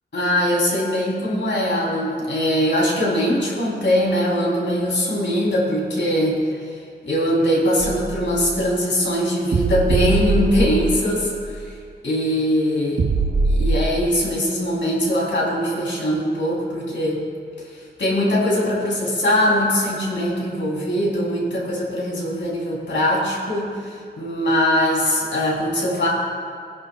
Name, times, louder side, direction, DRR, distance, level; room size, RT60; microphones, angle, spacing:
voice 1, 0.1-6.6 7.0-11.7 12.0-13.0 13.5-17.2 17.7-26.1, equal, 80° left, -4 dB, 3.5 m, -21 dB
sound 1, 7.8-8.6 9.5-11.2 11.5-11.6 13.0-14.1, right 3 dB, 60° right, 0.8 m, -22 dB
23.0 x 10.5 x 2.4 m, 2.3 s
wide cardioid pair, 90°, 19 cm